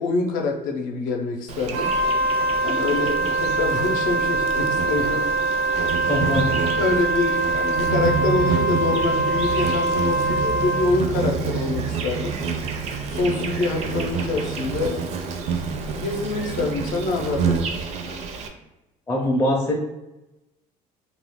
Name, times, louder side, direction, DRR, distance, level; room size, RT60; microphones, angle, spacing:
voice 1, 0.0-1.9 2.6-5.3 6.8-12.4 13.1-15.0 15.9-17.6, left 3 dB, 70° left, 1 dB, 0.6 m, -25 dB
Insect, 1.5-18.5, right 6 dB, 50° right, 0.4 m, -28 dB
Wind instrument woodwind instrument, 1.7-11.0, right 2 dB, 85° right, 0.8 m, -23 dB
voice 2, 6.1-6.5 19.1-19.8, left 1 dB, 15° left, -2 dB, 0.5 m, -22 dB
2.3 x 2.2 x 3.5 m, 0.98 s
cardioid pair, 140°, 15 cm